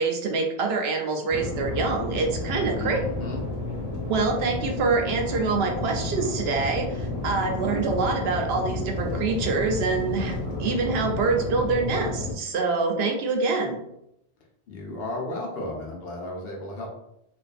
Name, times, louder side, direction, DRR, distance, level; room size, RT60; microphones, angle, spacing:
voice 1, 0.0-3.0 4.1-13.8, right 4 dB, 80° right, 2 dB, 0.8 m, -25 dB
sound 1, 1.3-12.3, left 2 dB, 45° left, 0.8 m, -31 dB
voice 2, 2.8-3.4 14.7-16.9, left 2 dB, 75° left, -1 dB, 0.9 m, -34 dB
2.5 x 2.4 x 2.4 m, 0.80 s
omnidirectional pair, 1.0 m